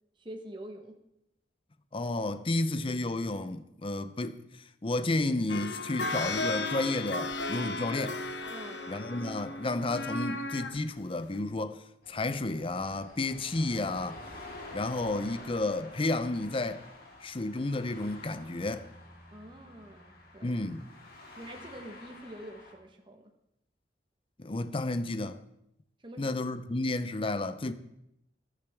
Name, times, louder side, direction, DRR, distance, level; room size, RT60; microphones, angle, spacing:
voice 1, 0.2-1.0 8.5-8.9 19.3-20.6 21.4-23.3 26.0-26.4, right 1 dB, 25° right, 1.2 m, -46 dB
voice 2, 1.9-4.4 4.8-8.2 8.9-14.2 14.7-16.8 17.2-18.9 20.4-20.9 24.4-25.4 26.2-27.7, left 2 dB, 30° left, 0.6 m, -32 dB
sound 1, 5.5-10.8 11.3-11.4, left 2 dB, 85° left, 1.0 m, -35 dB
sound 2, 12.0-22.7, left 2 dB, 55° left, 2.4 m, -49 dB
14.5 x 11.5 x 3.6 m
head